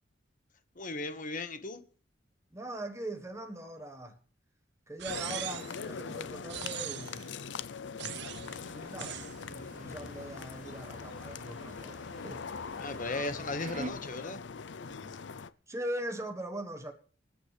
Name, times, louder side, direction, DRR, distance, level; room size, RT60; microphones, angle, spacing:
voice 1, 0.7-1.8 12.8-14.4, left 2 dB, 45° left, 1.5 m, -36 dB
voice 2, 2.5-4.2 4.9-7.3 8.7-9.2 9.5-12.4 15.7-16.9, right 1 dB, 15° right, 1.3 m, -41 dB
sound 1, 5.0-5.8 6.5-7.2 8.0-8.5 9.0-9.4, right 12 dB, 65° right, 0.6 m, -40 dB
sound 2, 5.1-15.5, left 5 dB, 70° left, 0.6 m, -42 dB
sound 3, 8.1-13.9, right 2 dB, 45° right, 1.0 m, -48 dB
26.0 x 8.9 x 3.4 m
head